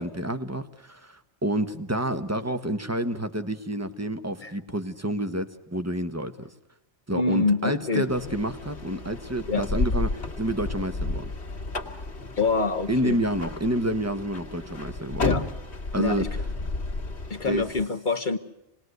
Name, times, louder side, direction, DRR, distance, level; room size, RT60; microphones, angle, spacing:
voice 1, 0.0-6.5 7.1-11.3 12.9-15.2 15.9-16.3 17.4-17.6, right 1 dB, 15° right, 9 dB, 1.2 m, -29 dB
voice 2, 7.1-8.0 9.5-9.6 12.4-13.2 15.2-15.4 16.0-16.3 17.3-18.4, left 4 dB, 45° left, 8 dB, 1.2 m, -26 dB
sound 1, 8.1-17.9, left 2 dB, 70° left, 2.1 m, -32 dB
28.0 x 20.0 x 8.0 m, 0.89 s
omnidirectional pair, 1.2 m